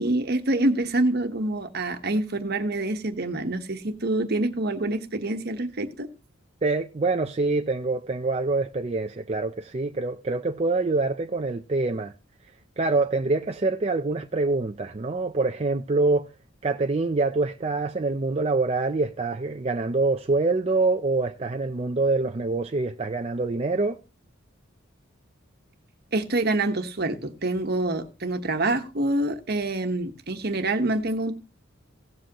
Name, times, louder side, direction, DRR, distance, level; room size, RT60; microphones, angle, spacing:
voice 1, 0.0-6.1 26.1-31.3, right 2 dB, 50° right, 1.2 m, -26 dB
voice 2, 6.6-12.1 12.5-16.3 16.6-24.0, right 3 dB, 30° right, 0.5 m, -25 dB
17.0 x 7.6 x 2.9 m
head